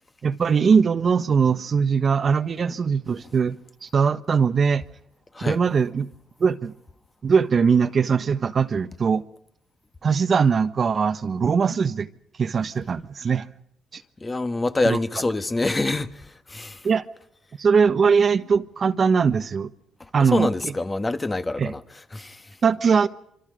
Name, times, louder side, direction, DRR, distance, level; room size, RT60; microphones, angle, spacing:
voice 1, 0.2-4.8 5.5-6.1 6.4-6.7 7.2-9.2 10.0-12.1 12.4-13.5 13.9-14.0 14.8-15.0 16.8-17.0 17.6-19.7 20.1-20.5 21.6-21.7 22.6-23.1, right 6 dB, 45° right, 1.3 m, -21 dB
voice 2, 14.2-16.9 20.0-22.6, left 2 dB, 20° left, 1.5 m, -26 dB
26.5 x 25.0 x 5.2 m
cardioid pair, 90°, 0 cm